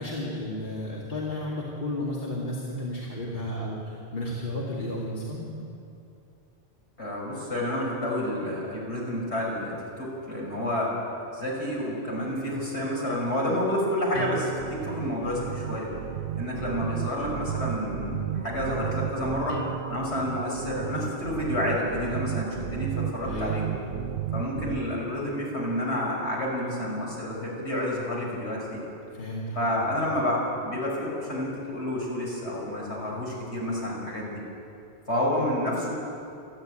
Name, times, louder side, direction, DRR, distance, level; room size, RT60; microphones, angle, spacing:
voice 1, 0.0-5.5 23.2-23.6 29.1-29.8, left 1 dB, 45° left, -5 dB, 2.7 m, -33 dB
voice 2, 7.0-10.9 11.3-15.9 16.3-19.6 19.9-23.7 24.3-28.8 29.5-34.4 35.1-36.0, left 1 dB, 65° left, -4 dB, 6.2 m, -29 dB
sound 1, 14.1-24.8, right 11 dB, 65° right, 0.8 m, -33 dB
27.5 x 10.5 x 9.2 m, 2.6 s
omnidirectional pair, 1.2 m